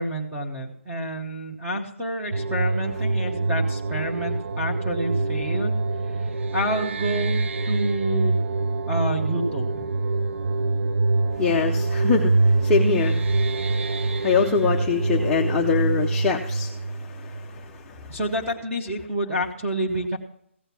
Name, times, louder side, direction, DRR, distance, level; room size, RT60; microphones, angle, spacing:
voice 1, 0.0-5.8 6.1-8.3 8.9-9.9 18.1-20.2, right 1 dB, 10° right, -3 dB, 1.0 m, -28 dB
sound 1, 2.3-17.8, right 3 dB, 65° right, 0.7 m, -25 dB
voice 2, 11.4-13.4 13.7-18.1, left 5 dB, 10° left, -2 dB, 0.6 m, -24 dB
15.5 x 7.8 x 5.9 m, 0.69 s
hypercardioid pair, 170°, 7 cm